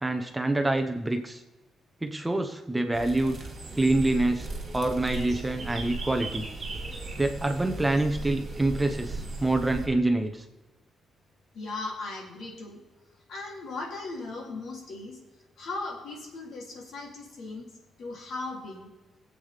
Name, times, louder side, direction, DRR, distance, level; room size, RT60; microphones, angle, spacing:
voice 1, 0.0-1.4 2.0-3.5 3.8-6.5 7.2-10.4, right 2 dB, 10° right, 5 dB, 0.7 m, -26 dB
sound 1, 2.9-9.9, right 3 dB, 30° right, 2.7 m, -37 dB
voice 2, 11.5-12.8 13.3-15.2 15.6-17.7 18.0-18.9, left 3 dB, 60° left, 0 dB, 2.8 m, -37 dB
22.5 x 8.1 x 3.3 m, 1.1 s
cardioid pair, 175°, 0 cm